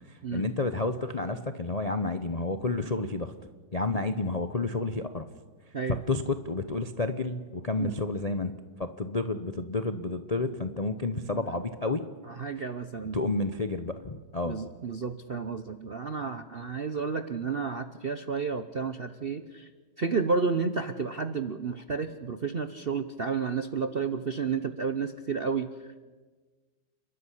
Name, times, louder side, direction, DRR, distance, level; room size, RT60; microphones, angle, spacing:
voice 1, 0.3-3.3 3.7-5.3 6.1-8.5 8.8-12.0 13.1-14.6, left 3 dB, 40° left, 9 dB, 0.5 m, -30 dB
voice 2, 11.1-11.5 12.3-13.3 14.4-19.7 20.0-26.0, right 5 dB, 50° right, 10 dB, 0.7 m, -31 dB
29.0 x 13.0 x 10.0 m, 1.3 s
omnidirectional pair, 2.1 m